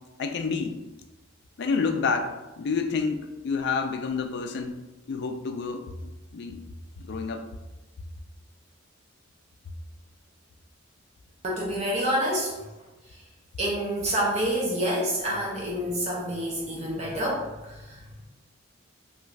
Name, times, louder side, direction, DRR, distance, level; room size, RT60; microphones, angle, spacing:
voice 1, 0.2-0.8 1.6-4.7 5.1-6.6 7.0-7.5, left 4 dB, 55° left, 6 dB, 0.3 m, -29 dB
voice 2, 11.4-12.6 13.6-18.2, equal, 35° right, -4 dB, 0.5 m, -28 dB
2.5 x 2.4 x 3.1 m, 1.1 s
head